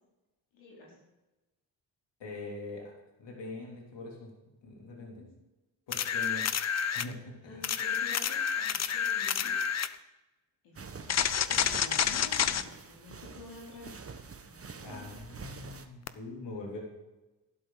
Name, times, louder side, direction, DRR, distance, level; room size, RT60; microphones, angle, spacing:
voice 1, 0.5-1.0 5.2-5.3 7.4-9.6 9.8-9.9 10.6-14.0 14.3-15.2, left 3 dB, 85° left, -4 dB, 3.1 m, -49 dB
voice 2, 2.2-2.9 3.2-4.3 4.6-5.2 5.9-6.5 6.9-7.7 14.8-16.8, left 2 dB, 65° left, -1 dB, 3.5 m, -43 dB
sound 1, 5.9-7.1 7.6-9.9 11.1-12.6 16.1-16.2, left 8 dB, 35° left, 0.6 m, -29 dB
sound 2, 10.8-15.9, right 5 dB, 30° right, 1.2 m, -47 dB
12.0 x 11.5 x 4.0 m, 1.0 s
supercardioid pair, 60°, 46 cm